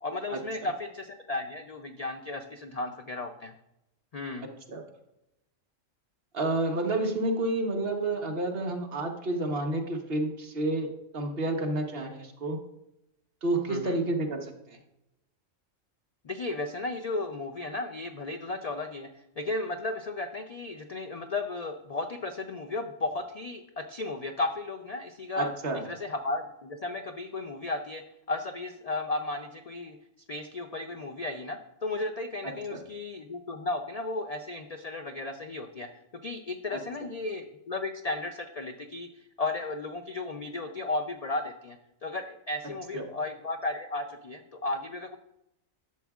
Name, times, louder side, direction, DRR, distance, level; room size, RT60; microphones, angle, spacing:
voice 1, 0.0-3.5 4.1-4.5 13.7-14.0 16.2-19.1 19.4-25.5 25.8-28.0 28.3-30.0 30.3-35.9 36.2-41.8 42.0-45.2, left 2 dB, 75° left, 6 dB, 0.3 m, -34 dB
voice 2, 6.3-10.9 11.1-12.6 13.4-14.8 25.4-25.8 32.7-32.8 42.9-43.0, right 2 dB, 50° right, 3 dB, 1.2 m, -29 dB
11.5 x 7.1 x 2.4 m, 0.85 s
omnidirectional pair, 1.4 m